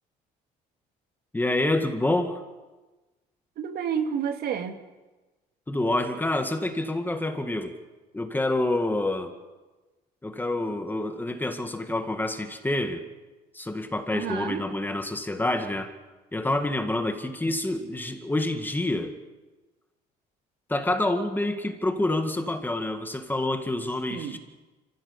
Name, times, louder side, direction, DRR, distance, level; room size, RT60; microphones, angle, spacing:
voice 1, 1.3-2.4 5.7-7.7 8.1-9.3 10.2-13.0 13.5-15.9 16.3-19.1 20.7-24.4, left 1 dB, 10° left, 6 dB, 2.0 m, -27 dB
voice 2, 3.6-4.8 14.1-14.7 24.1-24.4, right 7 dB, 65° right, 6 dB, 2.0 m, -30 dB
25.0 x 15.5 x 7.1 m, 1.2 s
cardioid pair, 110°, 17 cm